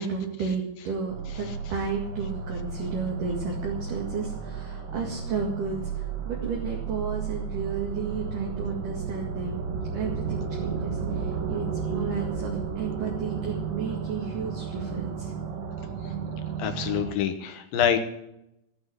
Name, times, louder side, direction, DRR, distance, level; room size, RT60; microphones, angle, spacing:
voice 1, 0.0-9.6 9.9-15.3, right 5 dB, 55° right, -1 dB, 3.2 m, -33 dB
sound 1, 1.1-17.1, right 6 dB, 90° right, 1.5 m, -33 dB
voice 2, 16.6-18.0, left 9 dB, 70° left, 7 dB, 2.4 m, -26 dB
18.0 x 6.1 x 9.6 m, 0.83 s
omnidirectional pair, 5.1 m